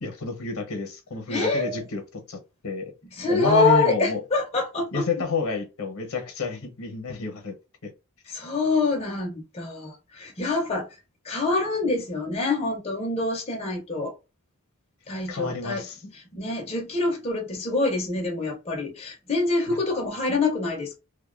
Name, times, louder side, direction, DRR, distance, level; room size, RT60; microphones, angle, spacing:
voice 1, 0.0-2.9 3.3-4.2 4.9-7.5 7.8-7.9 15.3-16.1 19.7-19.8, left 3 dB, 70° left, 0.8 m, -30 dB
voice 2, 1.3-1.8 3.2-5.0 8.3-10.9 11.2-14.1 15.1-15.8 16.1-21.0, left 3 dB, 30° left, 0.5 m, -25 dB
2.6 x 2.2 x 2.4 m
head